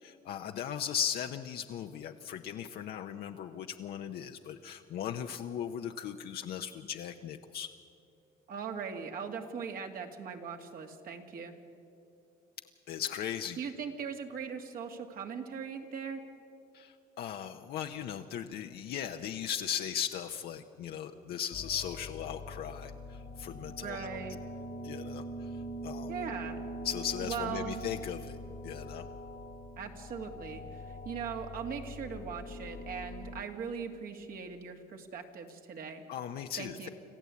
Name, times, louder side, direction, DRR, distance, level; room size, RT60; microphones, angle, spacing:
voice 1, 0.0-7.7 12.9-13.6 16.7-24.2 24.8-25.5 25.8-26.1 26.8-28.4 28.6-29.0 36.1-36.9, left 9 dB, 70° left, 5 dB, 0.8 m, -38 dB
voice 2, 8.5-11.5 13.6-16.2 23.8-24.4 26.1-26.6 27.2-27.9 29.8-36.0 36.6-36.9, right 6 dB, 60° right, 4 dB, 2.2 m, -40 dB
sound 1, 21.5-33.4, equal, 35° left, 1.3 m, -43 dB
26.5 x 14.5 x 8.4 m, 2.7 s
cardioid pair, 110°, 17 cm